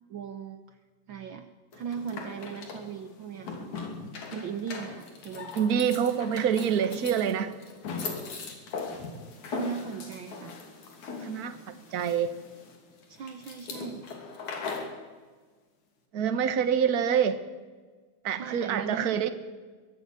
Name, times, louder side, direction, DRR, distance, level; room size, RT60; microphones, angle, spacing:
voice 1, 0.1-0.8 1.1-1.5 1.7-3.7 4.3-5.7 6.1-6.2 9.5-10.5 13.1-14.0 18.3-19.3, right 7 dB, 80° right, 8 dB, 1.1 m, -38 dB
sound 1, 1.7-15.0, left 4 dB, 70° left, 4.2 m, -40 dB
voice 2, 5.5-7.5 11.2-12.3 16.1-17.4 18.2-19.3, right 8 dB, 55° right, 10 dB, 1.0 m, -26 dB
23.5 x 15.0 x 9.5 m, 1.4 s
omnidirectional pair, 3.5 m